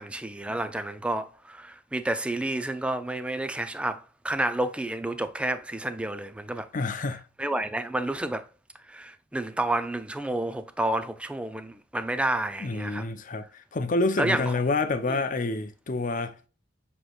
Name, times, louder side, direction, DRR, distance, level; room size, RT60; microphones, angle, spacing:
voice 1, 0.0-6.7 7.4-8.5 8.9-13.0 14.2-14.4 15.1-15.2, right 1 dB, 5° right, 0.4 m, -30 dB
voice 2, 6.7-7.2 12.6-16.4, left 3 dB, 45° left, 0.6 m, -28 dB
7.1 x 3.1 x 2.3 m
head